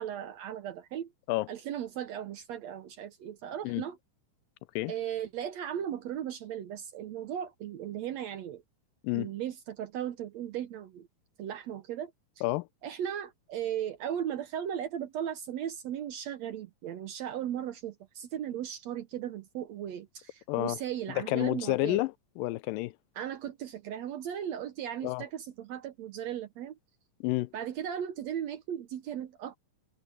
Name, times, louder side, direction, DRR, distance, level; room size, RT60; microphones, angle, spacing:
voice 1, 0.0-1.1 1.5-4.0 4.9-8.6 9.1-11.1 11.4-12.1 12.8-22.0 23.2-26.8 27.5-29.6, right 10 dB, 70° right, 1.8 m, -37 dB
voice 2, 20.5-20.8 21.2-22.9 25.0-25.2 27.2-27.5, left 20 dB, 85° left, 2.3 m, -30 dB
omnidirectional pair, 3.9 m